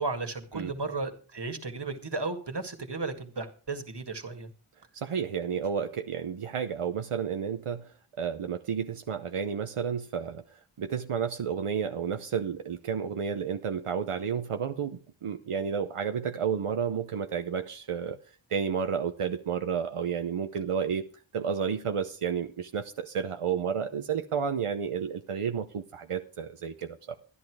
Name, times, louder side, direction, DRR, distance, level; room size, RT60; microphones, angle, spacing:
voice 1, 0.0-4.5, right 3 dB, 55° right, 7 dB, 2.1 m, -34 dB
voice 2, 4.9-18.2 18.5-21.0 21.3-27.1, right 7 dB, 85° right, 7 dB, 0.9 m, -31 dB
12.5 x 11.0 x 4.8 m, 0.38 s
wide cardioid pair, 45°, 50 cm